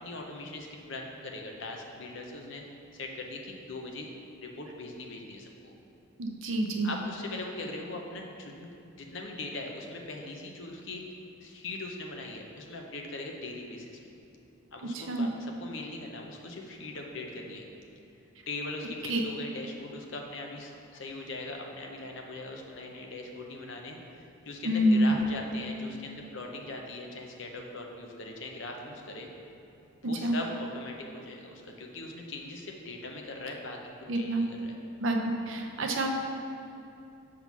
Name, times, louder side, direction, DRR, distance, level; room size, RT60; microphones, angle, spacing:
voice 1, 0.0-2.6 2.9-4.1 4.4-5.7 6.8-11.0 11.4-14.0 14.7-17.6 18.5-29.3 30.0-33.8 34.1-34.8, left 2 dB, 60° left, 1 dB, 0.7 m, -40 dB
voice 2, 6.2-6.9 14.9-15.3 19.1-19.2 24.6-25.2 30.0-30.4 34.1-34.5 35.0-36.1, right 1 dB, 70° right, 3 dB, 0.7 m, -27 dB
5.8 x 3.7 x 5.9 m, 2.8 s
head